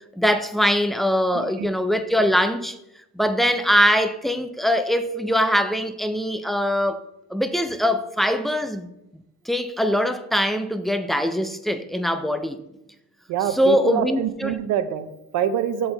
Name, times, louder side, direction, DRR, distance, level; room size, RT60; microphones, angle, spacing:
voice 1, 0.2-2.8 3.2-7.0 7.3-8.9 9.5-12.6 13.5-14.6, equal, ahead, 0.3 m, -22 dB
voice 2, 1.3-1.7 13.3-15.9, right 9 dB, 70° right, 0.6 m, -25 dB
6.9 x 3.8 x 3.9 m
cardioid pair, 105°, 32 cm